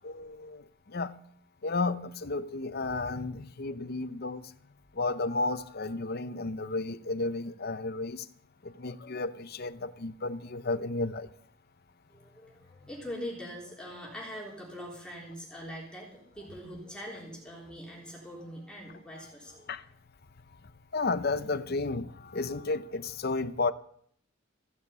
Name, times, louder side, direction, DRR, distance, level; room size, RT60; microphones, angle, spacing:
voice 1, 0.0-1.2 1.6-4.5 4.9-8.2 8.6-11.3 19.7-19.8 20.9-23.7, left 3 dB, 50° left, 0.7 m, -32 dB
voice 2, 12.1-19.7, equal, 5° left, 3.7 m, -43 dB
15.5 x 7.3 x 8.2 m
head